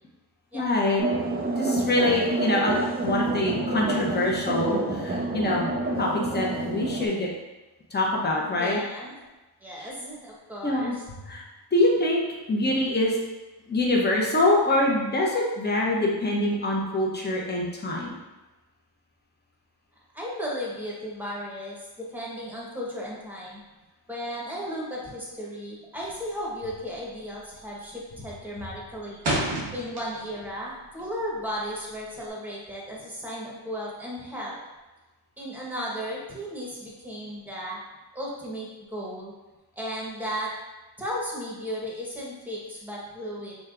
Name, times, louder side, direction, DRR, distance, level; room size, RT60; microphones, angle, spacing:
voice 1, 0.5-1.0 1.6-2.7 3.0-5.7 6.0-7.3 7.9-8.8 9.8-9.9 10.6-10.9 11.3-11.4 11.7-12.2 12.5-13.2 13.7-18.2, left 1 dB, 25° left, -2 dB, 0.9 m, -24 dB
sound 1, 1.0-7.1, right 2 dB, 25° right, 0.4 m, -28 dB
voice 2, 8.6-9.1 9.6-11.2 20.1-23.6 24.1-29.2 29.7-34.6 35.4-37.8 38.1-39.3 39.7-40.5 41.0-43.5, equal, 5° right, -4 dB, 1.0 m, -35 dB
sound 2, 26.0-26.4 26.7-27.1 27.4-27.8 28.2-30.5 30.8-32.3, right 1 dB, 85° right, 1.4 m, -31 dB
6.2 x 3.3 x 2.5 m, 1.1 s
wide cardioid pair, 150°, 40 cm